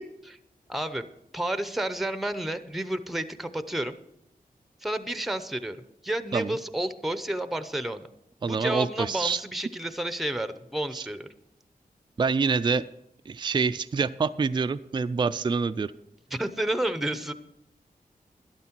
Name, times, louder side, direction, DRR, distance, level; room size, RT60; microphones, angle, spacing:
voice 1, 0.7-1.0 1.3-3.9 4.8-5.8 6.0-8.1 8.4-11.3 16.3-17.3, right 1 dB, ahead, 11 dB, 0.7 m, -30 dB
voice 2, 8.4-9.4 11.0-11.1 12.2-12.8 13.3-15.9, right 5 dB, 30° right, 11 dB, 0.3 m, -26 dB
12.5 x 11.5 x 4.5 m, 0.81 s
wide cardioid pair, 105°, 15 cm